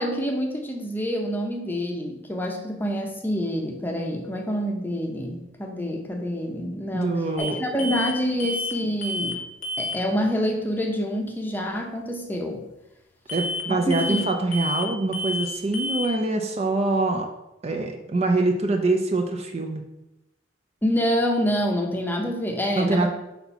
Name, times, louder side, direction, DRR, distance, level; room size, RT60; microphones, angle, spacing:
voice 1, 0.0-9.4 9.8-12.6 13.7-14.2 20.8-23.1, equal, 10° left, 2 dB, 0.7 m, -27 dB
voice 2, 6.9-7.6 13.3-17.3 17.6-19.8 22.7-23.1, right 2 dB, 30° right, 3 dB, 0.5 m, -24 dB
sound 1, 7.4-7.5 7.8-8.1 8.4-8.8 9.0-9.4 9.6-10.0 13.3-13.6 13.9-14.3 14.5-14.9 15.1-15.5 15.7-16.1, left 1 dB, 40° left, 0.8 m, -29 dB
4.3 x 4.0 x 5.5 m, 0.96 s
head